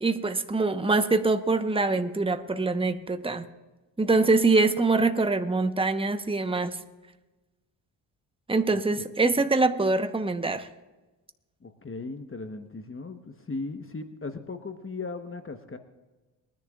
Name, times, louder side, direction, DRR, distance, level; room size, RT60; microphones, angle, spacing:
voice 1, 0.0-3.5 4.0-6.8 8.5-10.7, right 3 dB, 10° right, 9 dB, 1.1 m, -24 dB
voice 2, 11.6-15.8, left 3 dB, 25° left, 8 dB, 1.2 m, -37 dB
23.0 x 10.5 x 2.5 m, 1.2 s
hypercardioid pair, 45°, 49 cm